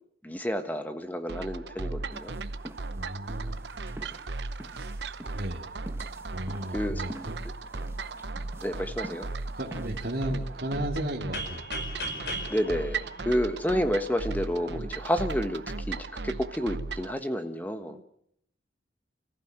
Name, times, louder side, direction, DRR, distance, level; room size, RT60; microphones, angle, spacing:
voice 1, 0.2-2.3 6.7-7.0 8.6-9.3 12.5-18.0, equal, 10° left, 8 dB, 1.2 m, -30 dB
sound 1, 1.3-17.1, right 3 dB, 70° right, 0.8 m, -36 dB
sound 2, 2.1-10.6, right 1 dB, 15° right, 1.3 m, -47 dB
voice 2, 3.0-3.6 4.7-4.9 5.3-5.7 6.3-7.4 9.5-11.6 17.9-18.0, right 1 dB, 55° right, -2 dB, 2.7 m, -34 dB
sound 3, 11.3-14.1, equal, 65° left, 5.2 m, -37 dB
29.5 x 15.0 x 8.9 m, 0.73 s
head